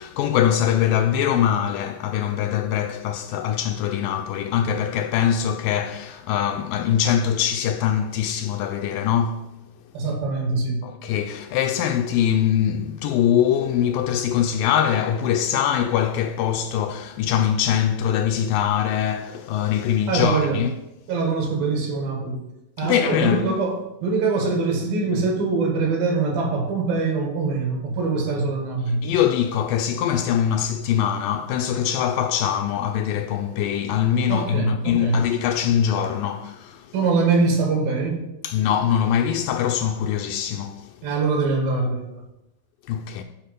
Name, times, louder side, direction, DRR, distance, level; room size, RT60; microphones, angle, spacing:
voice 1, 0.0-9.5 10.8-20.7 22.8-23.5 29.0-36.9 38.4-40.9 42.9-43.2, left 9 dB, 80° left, 2.0 m, -23 dB
voice 2, 9.9-10.9 20.1-20.6 21.1-22.4 22.8-29.1 34.3-35.2 36.9-38.2 41.0-42.2, right 4 dB, 75° right, 3.6 m, -23 dB
10.0 x 4.9 x 5.3 m
omnidirectional pair, 4.2 m